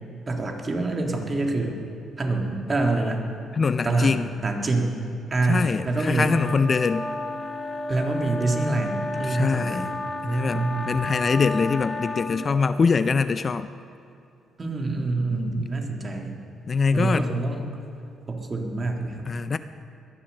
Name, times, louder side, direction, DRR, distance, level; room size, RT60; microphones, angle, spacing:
voice 1, 0.3-1.8 2.2-3.3 3.8-4.1 4.4-5.0 5.3-6.4 7.9-10.0 10.2-11.0 14.6-16.4 16.9-17.7 18.3-19.3, right 2 dB, 35° right, 2 dB, 2.1 m, -26 dB
voice 2, 3.5-4.3 5.5-7.1 9.3-9.9 10.2-13.7 15.3-15.7 16.7-17.3 19.3-19.6, left 5 dB, 40° left, 13 dB, 0.4 m, -23 dB
sound 1, 6.2-12.5, left 2 dB, 25° left, 1.0 m, -32 dB
21.0 x 7.2 x 6.6 m, 2.6 s
cardioid pair, 90°, 0 cm